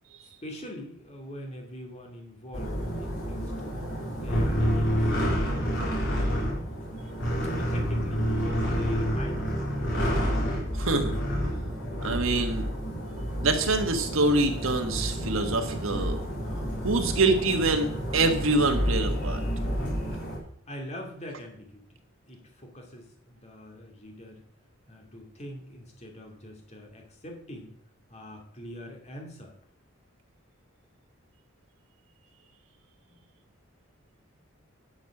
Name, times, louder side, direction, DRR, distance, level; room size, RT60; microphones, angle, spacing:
voice 1, 0.4-3.5 4.1-5.3 6.0-6.6 7.5-8.3 8.6-9.6 20.7-22.0 22.3-24.4 24.9-27.7 28.1-29.5 33.1-33.2, equal, 35° left, 1 dB, 2.5 m, -43 dB
sound 1, 2.5-20.4, equal, 60° left, 4.1 m, -29 dB
voice 2, 10.8-11.1 12.0-12.7 13.4-16.2 16.8-19.4, right 2 dB, 75° right, 5 dB, 1.6 m, -25 dB
10.5 x 6.4 x 6.0 m, 0.64 s
head